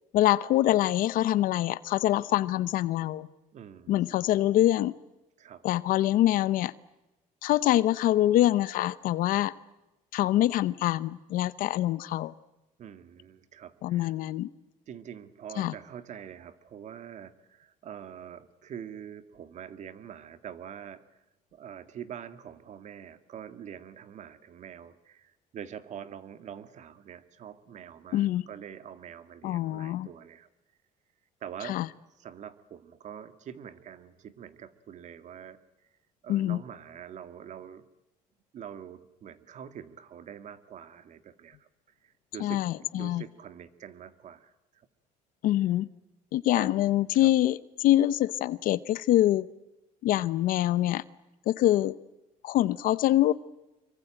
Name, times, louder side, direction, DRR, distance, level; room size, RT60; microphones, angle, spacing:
voice 1, 0.1-3.3 3.9-4.9 5.6-6.7 7.4-9.5 10.1-12.3 13.8-14.5 15.6-15.7 28.1-28.4 29.4-30.1 31.6-31.9 36.3-36.6 42.4-43.2 45.4-45.9 46.3-49.5 50.0-51.0 51.5-51.9 52.4-53.3, left 14 dB, 70° left, 16 dB, 0.9 m, -25 dB
voice 2, 3.5-4.0 5.4-5.6 12.8-14.2 14.9-21.1 21.5-30.5 31.4-31.9 32.2-35.6 36.2-37.8 38.5-41.7 42.0-42.6 42.9-44.9 46.5-46.7 47.1-47.3, right 9 dB, 55° right, 11 dB, 1.9 m, -45 dB
26.0 x 23.5 x 9.0 m, 0.99 s
cardioid pair, 110°, 15 cm